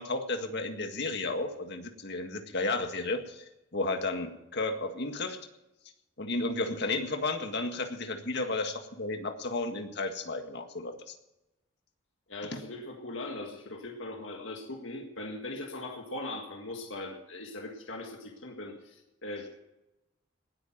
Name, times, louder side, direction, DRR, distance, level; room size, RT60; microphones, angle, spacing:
voice 1, 0.0-3.4 3.7-5.4 6.2-11.1 12.5-12.6, left 2 dB, 60° left, 6 dB, 1.9 m, -33 dB
voice 2, 12.3-19.6, left 2 dB, 80° left, 2 dB, 1.9 m, -40 dB
19.0 x 8.9 x 5.9 m, 0.93 s
head